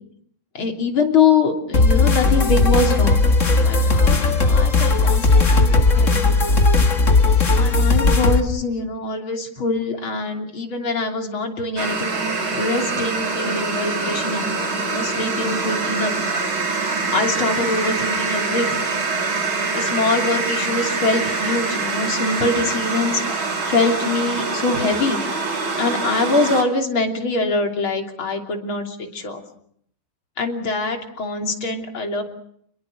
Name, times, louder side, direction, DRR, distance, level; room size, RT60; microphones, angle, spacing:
voice 1, 0.5-3.2 3.6-6.2 7.5-16.1 17.1-18.9 19.5-25.2 25.8-29.4 30.4-32.2, left 3 dB, 75° left, 4 dB, 4.0 m, -23 dB
sound 1, 1.7-8.4, left 3 dB, 40° left, 2.0 m, -16 dB
sound 2, 11.8-26.6, right 3 dB, 75° right, 4.1 m, -24 dB
29.5 x 22.0 x 6.5 m, 0.66 s
omnidirectional pair, 2.3 m